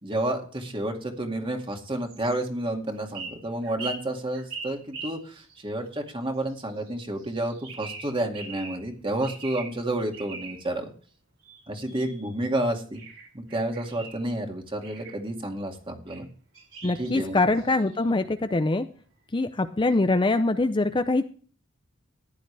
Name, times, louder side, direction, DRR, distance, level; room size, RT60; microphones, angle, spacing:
voice 1, 0.0-10.9 11.7-13.0 13.3-16.3 17.0-17.4, right 1 dB, 25° right, 3 dB, 2.2 m, -30 dB
sound 1, 2.1-2.4 3.0-5.7 6.4-6.9 7.2-8.9 9.2-9.8 10.1-10.7 11.4-12.5 12.9-14.2 14.8-15.2 16.1-16.2 16.5-18.1, right 4 dB, 75° right, 5.0 m, -42 dB
voice 2, 16.8-18.9 19.3-21.3, left 2 dB, 25° left, 9 dB, 0.5 m, -23 dB
14.5 x 10.5 x 3.4 m, 0.42 s
head